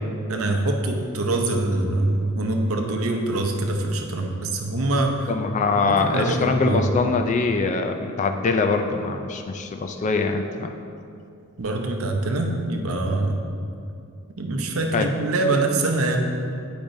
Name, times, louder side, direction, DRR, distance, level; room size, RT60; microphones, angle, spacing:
voice 1, 0.3-5.3 5.8-6.9 11.6-13.4 14.4-16.2, right 2 dB, 70° right, 3 dB, 0.7 m, -24 dB
voice 2, 5.3-10.7 14.9-15.1, left 4 dB, 35° left, 5 dB, 0.3 m, -23 dB
8.7 x 5.1 x 2.6 m, 2.5 s
head